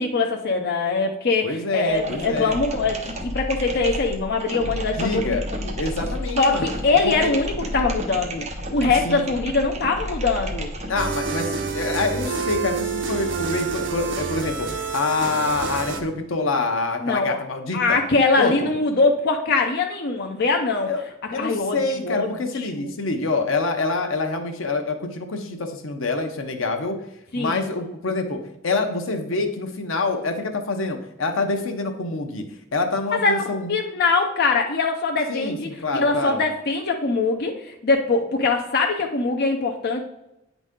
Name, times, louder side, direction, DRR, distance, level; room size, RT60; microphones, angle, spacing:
voice 1, 0.0-5.6 6.4-8.4 8.7-10.7 17.0-17.4 17.7-20.9 21.4-22.9 27.3-27.7 33.2-33.4 33.7-40.0, left 3 dB, 55° left, 2 dB, 0.6 m, -22 dB
voice 2, 1.4-2.6 5.0-5.4 5.8-6.7 7.0-7.3 9.0-9.3 10.9-18.0 18.4-18.7 20.9-21.0 21.3-27.0 27.3-32.4 32.7-33.7 35.3-36.4, left 3 dB, 80° left, 5 dB, 0.8 m, -26 dB
sound 1, 1.9-11.2, equal, 35° right, 0.9 m, -31 dB
sound 2, 11.0-16.0, right 5 dB, 65° right, 0.9 m, -27 dB
9.2 x 4.0 x 3.7 m, 0.87 s
head